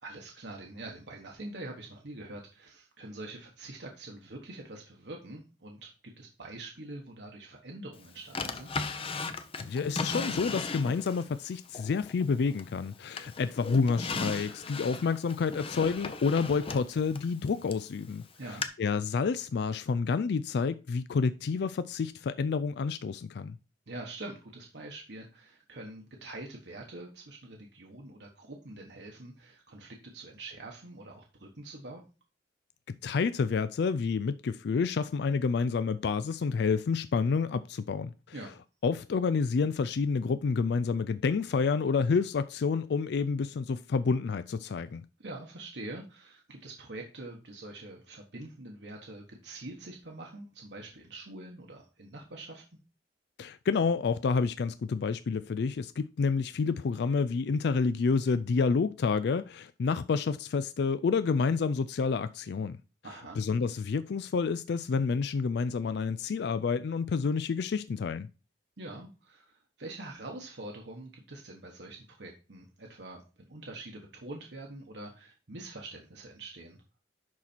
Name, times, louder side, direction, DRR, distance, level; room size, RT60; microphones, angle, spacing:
voice 1, 0.0-8.7 18.3-18.7 23.9-32.0 38.3-38.5 45.2-52.6 63.0-63.4 68.8-76.8, right 2 dB, 70° right, 1.3 m, -45 dB
Drawer open or close, 8.3-11.3 11.7-12.8 13.2-17.9 18.6-18.7, left 4 dB, 30° left, 0.7 m, -36 dB
voice 2, 9.6-18.2 18.8-23.6 33.0-38.1 38.8-45.0 53.4-62.8 63.4-68.3, left 5 dB, 65° left, 0.4 m, -29 dB
10.5 x 4.2 x 4.4 m
head